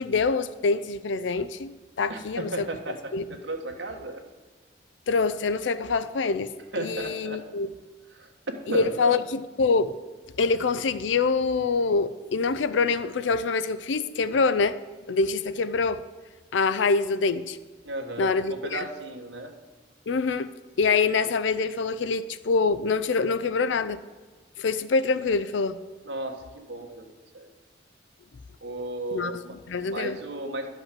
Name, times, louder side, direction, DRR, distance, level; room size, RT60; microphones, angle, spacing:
voice 1, 0.0-1.7 2.0-2.7 3.1-3.2 5.1-7.7 8.7-10.0 10.4-14.8 15.1-16.0 16.5-17.6 18.2-18.8 20.1-20.5 20.8-24.0 24.6-25.8 29.1-29.3 29.7-30.2, left 4 dB, 80° left, 14 dB, 0.5 m, -25 dB
voice 2, 2.1-4.2 6.7-7.4 8.1-8.3 8.7-9.2 17.8-19.5 26.0-27.1 27.3-27.5 28.6-29.6 29.8-30.7, right 2 dB, 75° right, 3 dB, 1.5 m, -35 dB
12.0 x 5.4 x 7.4 m, 1.4 s
head